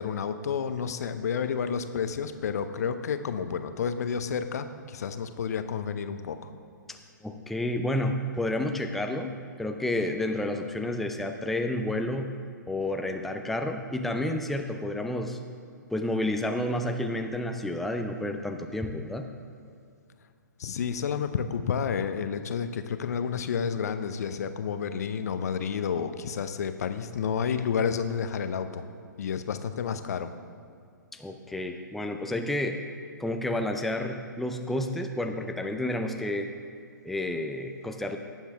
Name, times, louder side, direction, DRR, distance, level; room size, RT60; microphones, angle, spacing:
voice 1, 0.0-6.5 20.6-28.8 29.2-30.3, left 7 dB, 55° left, 10 dB, 0.7 m, -30 dB
voice 2, 6.9-12.4 12.7-15.4 15.9-19.3 31.1-32.8 33.2-36.5 37.0-38.2, left 1 dB, ahead, 5 dB, 0.4 m, -30 dB
18.0 x 7.3 x 3.5 m, 2.3 s
figure-of-eight pair, 120°, 10 cm